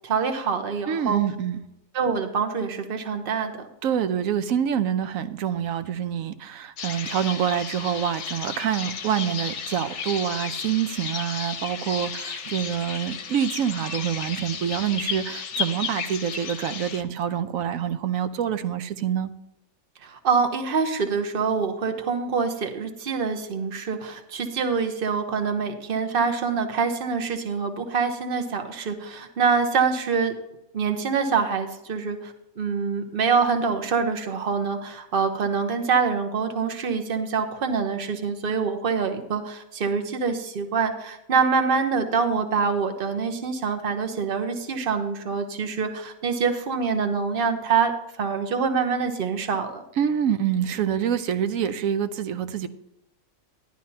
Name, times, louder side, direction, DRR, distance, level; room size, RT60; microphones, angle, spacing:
voice 1, 0.0-1.2 1.9-3.7 20.0-30.4 30.7-49.8, right 5 dB, 40° right, 1.1 m, -25 dB
voice 2, 0.9-1.6 3.8-19.3 50.0-52.7, right 9 dB, 65° right, 1.0 m, -26 dB
sound 1, 6.8-17.0, left 6 dB, 55° left, 1.0 m, -33 dB
11.5 x 11.5 x 2.8 m
omnidirectional pair, 1.6 m